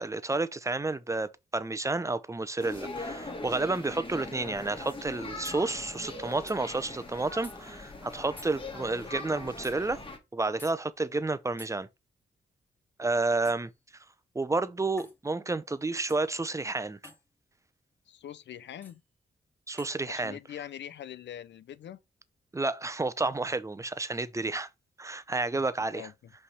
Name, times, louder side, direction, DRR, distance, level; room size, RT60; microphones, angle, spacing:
voice 1, 0.0-10.0 10.3-11.9 13.0-13.7 14.3-17.0 19.7-20.4 22.5-24.7 25.0-26.1, right 3 dB, 15° right, 0.7 m, -30 dB
sound 1, 2.6-10.2, left 2 dB, 30° left, 1.9 m, -41 dB
sound 2, 5.4-5.6 6.5-6.6 7.4-7.6 8.4-8.6 9.6-9.8 10.6-10.8 11.6-11.8 13.4-13.7 15.0-15.2 16.1-16.3 17.0-17.2 18.8-19.0 19.8-20.0, left 1 dB, 10° left, 2.2 m, -49 dB
voice 2, 18.1-19.0 20.1-22.0 25.5-25.6 25.9-26.3, left 10 dB, 85° left, 0.6 m, -43 dB
5.5 x 3.4 x 5.5 m
cardioid pair, 75°, 18 cm